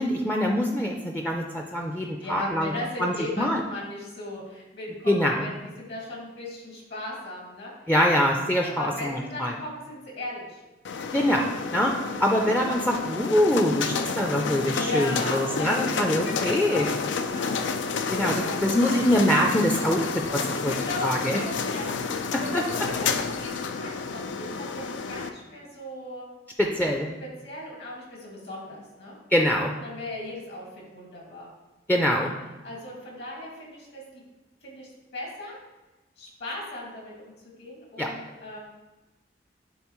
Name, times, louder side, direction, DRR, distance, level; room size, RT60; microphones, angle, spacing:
voice 1, 0.0-2.7 3.0-3.6 5.1-5.4 7.9-9.5 11.1-11.9 12.2-16.9 18.1-20.7 21.0-21.4 22.3-22.6 26.6-27.1 29.3-29.7 31.9-32.3 38.0-38.1, equal, 10° left, 1 dB, 0.4 m, -24 dB
voice 2, 2.0-7.7 8.7-10.6 11.6-11.9 14.8-17.6 18.3-18.6 20.7-26.3 26.7-26.8 27.2-29.1 29.8-31.5 32.1-32.2 32.6-34.2 34.6-35.6 36.2-38.6, left 1 dB, 60° left, -3 dB, 2.1 m, -37 dB
sound 1, 10.9-25.3, left 5 dB, 85° left, 0.4 m, -30 dB
10.5 x 3.9 x 3.0 m, 1.1 s
head